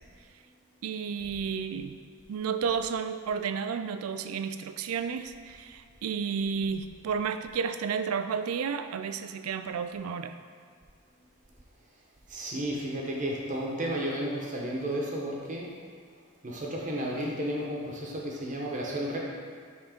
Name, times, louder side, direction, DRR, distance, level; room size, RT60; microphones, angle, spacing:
voice 1, 0.8-1.9 2.3-10.4, right 6 dB, 90° right, 9 dB, 0.4 m, -32 dB
voice 2, 12.3-15.7 16.4-19.2, right 1 dB, 35° right, -2 dB, 1.0 m, -32 dB
6.1 x 3.8 x 5.1 m, 2.1 s
head